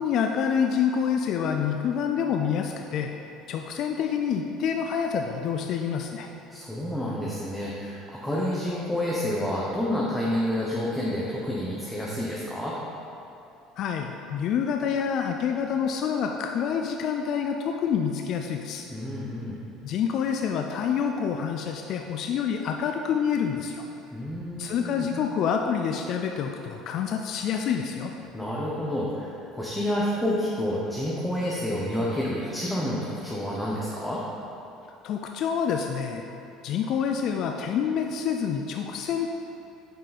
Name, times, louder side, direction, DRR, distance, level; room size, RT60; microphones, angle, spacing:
voice 1, 0.0-3.1 3.5-6.3 13.8-18.9 19.8-23.9 24.6-28.1 35.0-36.3 36.6-39.3, left 7 dB, 55° left, 3 dB, 0.4 m, -27 dB
voice 2, 6.5-12.8 18.9-19.6 24.1-25.1 28.3-34.2, left 1 dB, 5° left, -6 dB, 1.0 m, -29 dB
7.5 x 5.3 x 4.2 m, 2.7 s
cardioid pair, 115°, 0 cm